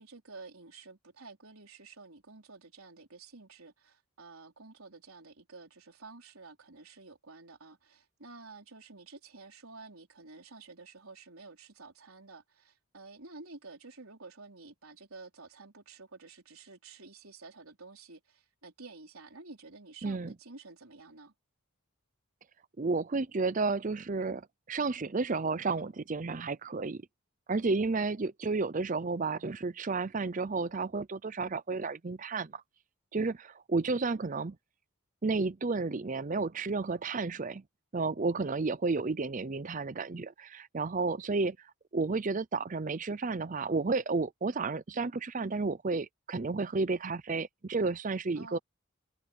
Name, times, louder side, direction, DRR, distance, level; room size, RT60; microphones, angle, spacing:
voice 1, 0.0-21.3 48.4-48.6, right 3 dB, 75° right, 4.1 m, -51 dB
voice 2, 20.0-20.3 22.8-27.0 27.5-32.6 33.1-34.6 35.2-37.6 37.9-41.6 41.9-48.6, right 3 dB, 35° right, 0.5 m, -32 dB
head